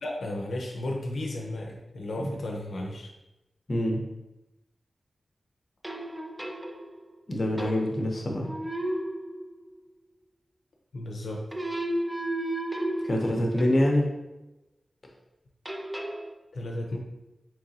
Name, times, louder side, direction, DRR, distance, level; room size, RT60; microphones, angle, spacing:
voice 1, 0.0-3.1 10.9-11.4 16.5-17.0, left 1 dB, 85° left, -1 dB, 0.5 m, -34 dB
voice 2, 3.7-4.0 7.3-8.5 13.0-14.1, left 1 dB, 45° left, 0 dB, 0.7 m, -25 dB
sound 1, 5.8-7.1 7.6-8.2 8.4-9.8 11.5-14.0 15.7-16.3, right 1 dB, 10° right, 0.4 m, -33 dB
3.8 x 3.0 x 2.7 m, 0.96 s
wide cardioid pair, 95°, 0 cm